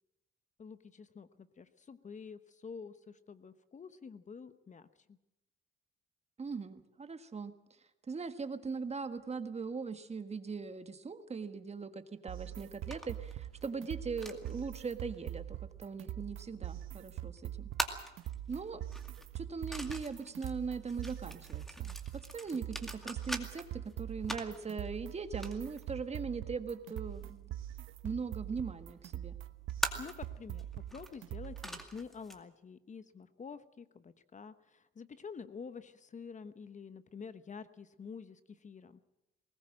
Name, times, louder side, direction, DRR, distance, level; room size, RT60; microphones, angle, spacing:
voice 1, 0.6-5.2 30.0-39.0, left 5 dB, 40° left, 13 dB, 1.1 m, -48 dB
voice 2, 6.4-7.5 8.1-17.7 18.5-18.8 19.3-27.5 28.0-29.4, right 5 dB, 35° right, 9 dB, 1.6 m, -40 dB
sound 1, 12.3-31.8, right 12 dB, 85° right, 1.1 m, -43 dB
sound 2, 12.5-32.4, equal, ahead, 2.3 m, -45 dB
20.5 x 18.5 x 7.6 m, 0.90 s
cardioid pair, 90°, 20 cm